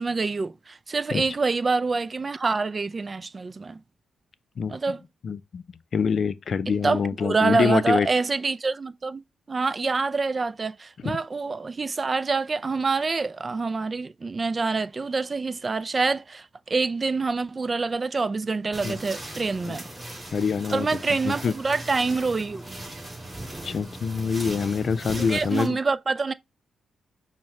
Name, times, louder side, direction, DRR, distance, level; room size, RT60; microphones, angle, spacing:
voice 1, 0.0-3.8 4.7-5.0 6.8-19.9 20.7-22.8 25.2-26.3, right 4 dB, 35° right, 0.3 m, -26 dB
voice 2, 5.2-5.6 5.9-8.1 11.0-11.2 18.8-19.0 19.6-19.8 20.3-21.0 21.2-21.5 23.6-25.8, left 6 dB, 55° left, 0.4 m, -25 dB
sound 1, 18.7-25.7, right 1 dB, 15° right, 3.0 m, -38 dB
5.7 x 2.2 x 4.2 m
cardioid pair, 80°, 0 cm